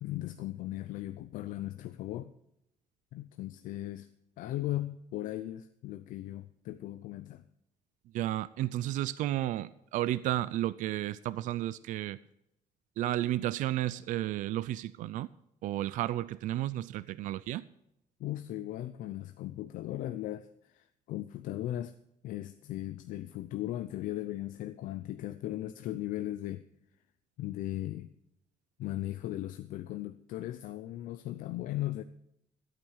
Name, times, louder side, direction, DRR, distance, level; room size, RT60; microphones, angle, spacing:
voice 1, 0.0-2.3 3.1-4.1 4.4-7.5 18.2-21.9 22.2-26.6 27.4-28.1 28.8-32.0, left 14 dB, 80° left, 10 dB, 0.6 m, -37 dB
voice 2, 8.1-12.2 13.0-15.3 15.6-17.7, right 14 dB, 75° right, 17 dB, 0.5 m, -32 dB
13.0 x 9.0 x 6.3 m, 0.79 s
cardioid pair, 160°, 13 cm